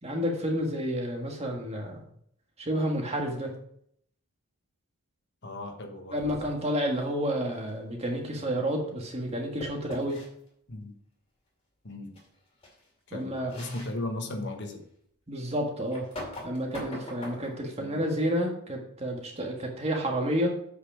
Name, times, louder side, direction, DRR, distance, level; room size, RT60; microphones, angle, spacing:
voice 1, 0.0-2.0 2.6-3.5 6.1-10.2 13.1-13.6 15.3-16.1 16.4-20.5, equal, 30° right, 1 dB, 1.6 m, -30 dB
voice 2, 5.4-6.2 10.7-10.9 11.8-12.2 13.1-14.9 17.8-18.0, left 2 dB, 50° left, 4 dB, 1.2 m, -36 dB
sound 1, 6.2-6.7 9.6-10.3 12.1-12.2 12.6-12.8 13.5-13.9 14.5-14.6 15.9-17.7, left 1 dB, 25° left, 2.3 m, -41 dB
8.1 x 5.9 x 4.9 m, 0.69 s
head